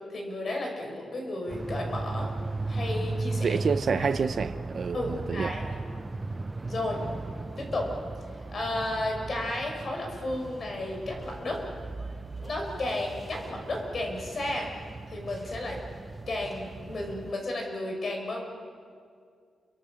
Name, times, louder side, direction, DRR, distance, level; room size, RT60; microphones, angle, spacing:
voice 1, 0.1-2.3 2.7-3.6 4.0-4.1 4.9-5.8 6.6-7.0 7.6-7.9 8.5-11.6 12.4-14.7 15.1-15.8 16.3-18.4, left 1 dB, 45° left, 1 dB, 5.9 m, -33 dB
sound 1, 1.5-17.3, right 3 dB, 25° right, 0.7 m, -37 dB
voice 2, 3.4-5.6, right 5 dB, 55° right, 11 dB, 0.8 m, -28 dB
29.5 x 24.5 x 6.6 m, 2.2 s
cardioid pair, 105°, 0 cm